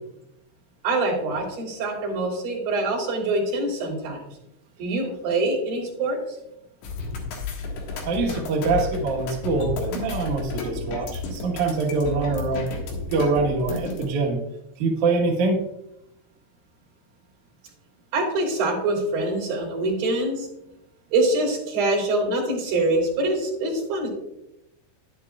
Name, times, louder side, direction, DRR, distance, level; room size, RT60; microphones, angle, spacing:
voice 1, 0.8-4.2 4.8-6.2 18.1-20.5 21.1-24.1, right 2 dB, 50° right, -4 dB, 4.5 m, -24 dB
sound 1, 6.8-14.1, left 3 dB, 70° left, 3.6 m, -32 dB
voice 2, 8.0-12.7 13.1-14.4 14.8-15.6, right 3 dB, 80° right, -1 dB, 1.7 m, -24 dB
11.5 x 10.5 x 2.3 m, 0.85 s
omnidirectional pair, 5.7 m